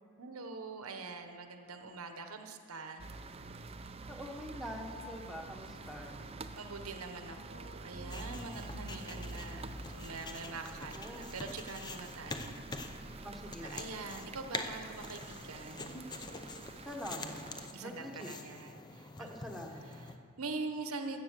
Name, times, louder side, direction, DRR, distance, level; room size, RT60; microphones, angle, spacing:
voice 1, 0.2-3.1 6.6-13.0 13.6-16.1 17.7-19.3 19.8-21.2, right 3 dB, 75° right, 6 dB, 1.0 m, -44 dB
sound 1, 3.0-17.7, right 3 dB, 25° right, 0.5 m, -47 dB
voice 2, 4.1-6.2 10.9-11.3 13.2-13.8 16.8-17.3 17.8-18.3 19.2-19.8, equal, ahead, 1 dB, 1.3 m, -44 dB
sound 2, 8.1-20.2, left 3 dB, 20° left, 0.7 m, -46 dB
14.5 x 8.2 x 6.7 m, 2.3 s
head